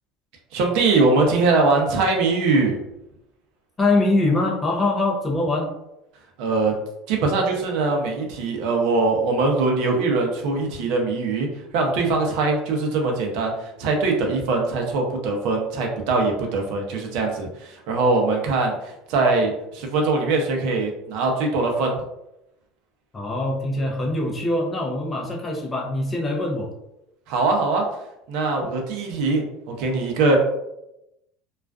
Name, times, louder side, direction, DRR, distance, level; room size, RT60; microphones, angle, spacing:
voice 1, 0.5-2.8 6.4-6.7 7.1-11.5 11.7-22.0 27.3-27.8 28.3-30.4, right 3 dB, 65° right, 1 dB, 0.5 m, -22 dB
voice 2, 3.8-5.7 23.1-26.7, left 2 dB, 15° left, -1 dB, 0.5 m, -23 dB
2.3 x 2.3 x 2.2 m, 0.87 s
cardioid pair, 150°, 0 cm